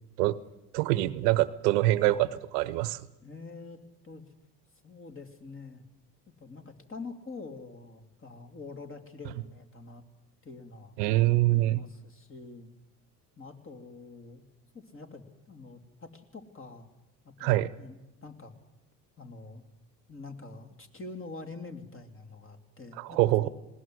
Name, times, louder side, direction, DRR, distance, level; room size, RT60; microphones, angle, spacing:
voice 1, 0.7-3.1 11.0-11.8 17.4-17.7 23.0-23.5, right 17 dB, 70° right, 17 dB, 1.0 m, -25 dB
voice 2, 3.2-4.3 4.8-5.8 6.3-10.0 10.4-11.0 11.5-12.7 13.4-14.4 14.7-16.9 17.4-18.5 19.2-19.6 20.1-23.5, left 3 dB, 25° left, 6 dB, 3.2 m, -45 dB
20.0 x 19.0 x 7.9 m, 0.96 s
hypercardioid pair, 70°, 49 cm